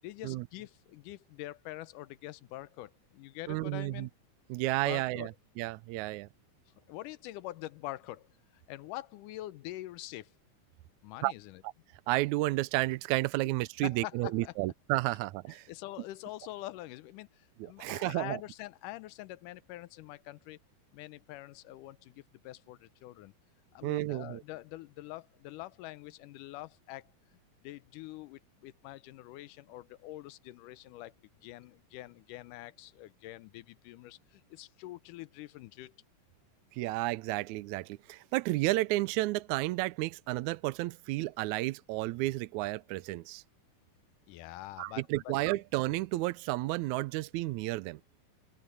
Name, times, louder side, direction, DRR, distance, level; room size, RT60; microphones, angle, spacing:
voice 1, 0.0-4.1 4.8-5.3 6.9-10.3 11.0-11.6 13.8-14.5 15.7-20.6 20.9-23.3 23.7-31.1 31.4-36.0 44.3-45.3, left 16 dB, 90° left, 2.2 m, -45 dB
voice 2, 3.5-4.1 4.5-5.3 5.6-6.3 11.2-11.3 12.1-15.7 17.8-18.4 23.8-24.4 36.7-43.4 44.8-48.0, right 19 dB, 80° right, 1.8 m, -32 dB
open air
omnidirectional pair, 3.7 m